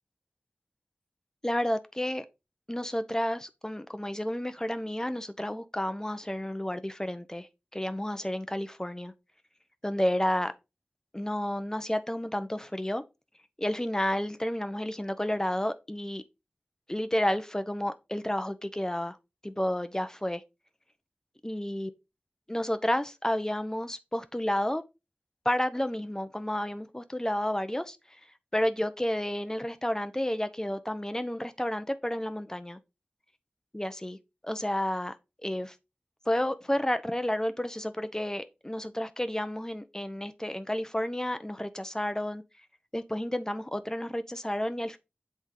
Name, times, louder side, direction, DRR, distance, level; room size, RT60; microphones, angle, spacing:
voice 1, 1.4-2.2 2.7-7.5 7.7-9.1 9.8-10.5 11.1-13.0 13.6-16.2 16.9-19.2 19.4-20.4 21.4-21.9 22.5-24.8 25.4-28.0 28.5-32.8 33.7-34.2 34.4-35.1 35.4-35.7 36.3-42.4 42.9-45.0, left 1 dB, 15° left, 0.9 m, -31 dB
8.1 x 3.5 x 4.8 m
wide cardioid pair, 45°, 4 cm